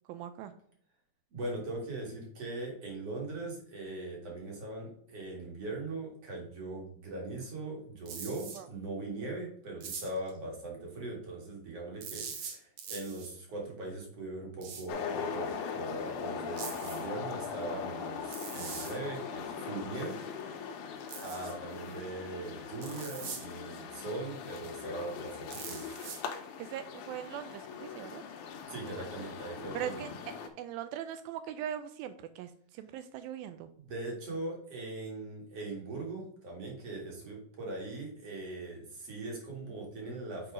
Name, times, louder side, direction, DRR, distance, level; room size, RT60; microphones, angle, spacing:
voice 1, 0.1-0.5 8.6-8.7 26.6-28.2 29.7-30.1 30.6-33.7, right 10 dB, 85° right, 10 dB, 2.2 m, -40 dB
voice 2, 1.3-20.2 21.2-25.8 28.7-30.0 33.8-40.5, right 2 dB, 45° right, -1 dB, 2.7 m, -40 dB
sound 1, 8.1-8.6 9.8-10.3 12.0-13.3 14.6-14.9 16.6-17.1 18.3-19.0 21.1-21.5 22.8-23.5 25.5-26.2, right 6 dB, 65° right, 1.9 m, -42 dB
sound 2, 14.9-30.5, left 6 dB, 70° left, 2.0 m, -40 dB
6.4 x 4.8 x 4.8 m, 0.64 s
omnidirectional pair, 4.3 m